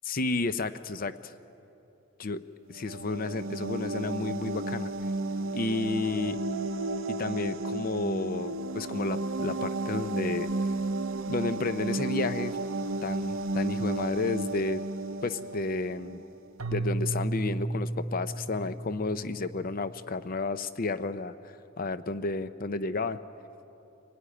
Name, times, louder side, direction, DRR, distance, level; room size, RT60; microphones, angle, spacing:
voice 1, 0.1-1.3 2.2-2.4 2.7-4.9 5.5-6.4 7.2-10.5 11.3-12.6 13.0-14.8 15.2-16.2 16.7-23.2, left 3 dB, 45° left, 12 dB, 0.6 m, -31 dB
sound 1, 2.7-16.3, right 2 dB, 70° right, 0.7 m, -33 dB
Keyboard (musical), 16.6-19.7, right 2 dB, 85° right, 1.3 m, -33 dB
25.5 x 18.0 x 10.0 m, 2.9 s
head